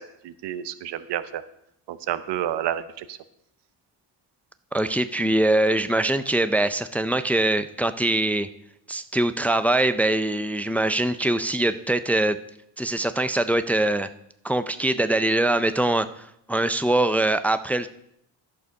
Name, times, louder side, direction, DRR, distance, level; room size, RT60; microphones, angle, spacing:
voice 1, 0.0-1.4 1.9-3.2, right 11 dB, 70° right, 12 dB, 0.9 m, -30 dB
voice 2, 4.7-8.5 8.9-12.4 12.8-14.1 14.4-17.9, right 1 dB, 5° left, 11 dB, 0.3 m, -23 dB
11.0 x 6.8 x 5.3 m, 0.76 s
cardioid pair, 95°, 43 cm